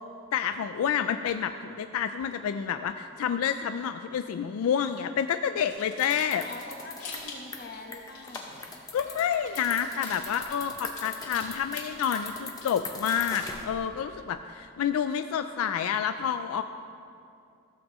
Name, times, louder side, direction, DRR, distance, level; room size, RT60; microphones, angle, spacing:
voice 1, 0.3-6.4 8.9-16.6, left 8 dB, 85° left, 9 dB, 0.3 m, -29 dB
sound 1, 5.7-9.1 9.4-13.9, left 4 dB, 70° left, 2.5 m, -45 dB
sound 2, 6.0-13.7, left 4 dB, 15° left, 0.6 m, -41 dB
voice 2, 6.4-8.7, left 2 dB, 50° left, 2 dB, 1.0 m, -44 dB
15.0 x 7.3 x 3.0 m, 2.5 s
head